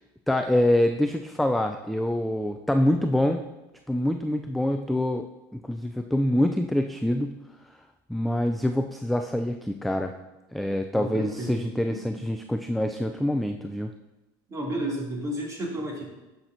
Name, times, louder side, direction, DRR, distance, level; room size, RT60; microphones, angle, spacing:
voice 1, 0.3-3.4 3.9-5.2 5.5-7.4 8.1-10.1 10.5-13.9, left 1 dB, ahead, 6 dB, 0.3 m, -25 dB
voice 2, 10.9-11.6 11.9-12.0 14.5-16.0, right 1 dB, 25° right, -2 dB, 2.6 m, -31 dB
10.5 x 5.9 x 2.6 m, 1.0 s
supercardioid pair, 95°, 12 cm